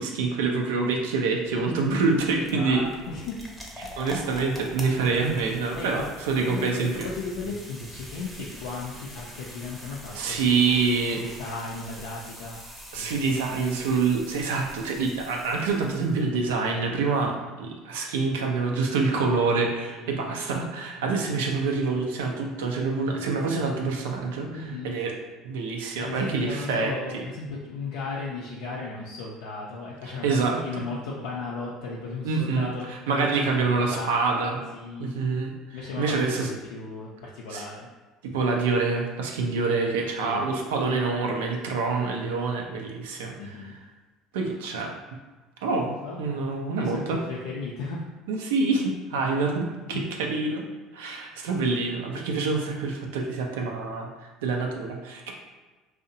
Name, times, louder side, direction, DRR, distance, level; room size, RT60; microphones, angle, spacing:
voice 1, 0.0-2.8 3.8-7.1 10.1-11.2 12.9-25.1 25.4-27.3 30.1-30.9 32.2-34.6 35.0-36.5 37.5-37.6 38.2-43.8 44.3-44.9 45.6-47.2 48.3-50.6 50.9-55.3, right 4 dB, 85° right, 1 dB, 0.4 m, -26 dB
sound 1, 1.4-16.3, equal, 5° right, 0.6 m, -44 dB
voice 2, 2.5-3.4 5.7-6.0 6.4-10.8 11.2-12.6 12.9-13.8 19.9-20.3 24.5-25.0 26.0-32.9 33.2-35.2 35.7-37.9 40.2-40.5 43.4-43.8 46.0-46.2 46.8-48.0 49.9-50.0, left 3 dB, 80° left, -4 dB, 0.3 m, -36 dB
2.6 x 2.0 x 2.6 m, 1.2 s
hypercardioid pair, 80°, 0 cm